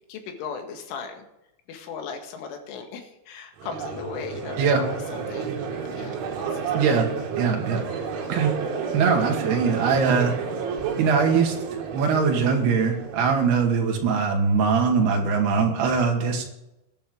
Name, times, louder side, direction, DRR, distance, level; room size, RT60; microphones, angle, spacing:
voice 1, 0.1-1.3 1.7-7.0 8.3-8.6, left 6 dB, 80° left, 4 dB, 4.3 m, -38 dB
Crowd, 3.6-13.8, right 6 dB, 75° right, 4.5 m, -31 dB
voice 2, 6.7-7.1 7.4-7.8 8.3-8.5 8.9-10.3 11.0-11.6 11.9-16.4, right 5 dB, 60° right, 2 dB, 3.9 m, -21 dB
20.5 x 11.0 x 3.9 m, 0.90 s
omnidirectional pair, 5.6 m